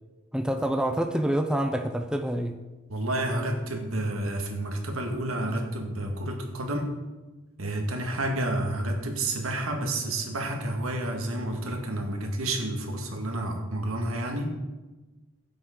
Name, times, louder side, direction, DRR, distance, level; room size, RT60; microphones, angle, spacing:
voice 1, 0.3-2.6, right 1 dB, 5° right, 5 dB, 0.5 m, -27 dB
voice 2, 2.9-6.9 7.6-14.5, right 1 dB, 90° right, 3 dB, 1.8 m, -30 dB
15.5 x 7.9 x 3.8 m, 1.2 s
head